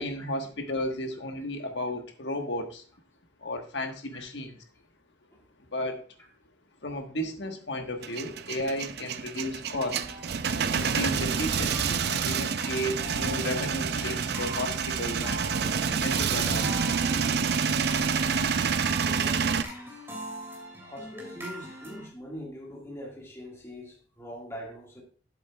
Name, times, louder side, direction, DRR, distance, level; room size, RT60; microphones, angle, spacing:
voice 1, 0.0-2.8 3.4-4.6 5.7-6.0 6.8-10.0 10.7-15.4 16.0-16.8, left 1 dB, 70° left, 1.4 m, -34 dB
Male speech man speaking / Vehicle / Engine starting, 8.0-19.6, right 6 dB, 60° right, 0.5 m, -28 dB
voice 2, 9.0-9.4 13.2-13.4 13.9-14.0 15.6-15.8 16.4-16.5 16.9-17.0 19.0-19.6 20.8-25.0, equal, 15° left, 1.8 m, -43 dB
sound 1, 9.9-22.1, equal, 15° right, 2.6 m, -42 dB
11.0 x 7.5 x 2.3 m
head